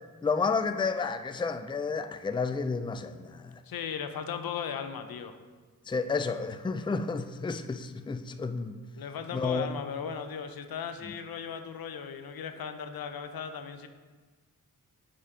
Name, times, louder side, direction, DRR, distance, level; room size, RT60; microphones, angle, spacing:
voice 1, 0.2-3.6 5.9-8.8 9.3-9.7, left 4 dB, 15° left, 0.4 m, -31 dB
voice 2, 3.7-5.4 9.0-13.9, left 7 dB, 80° left, 0.6 m, -37 dB
8.6 x 5.1 x 3.7 m
cardioid pair, 60°, 36 cm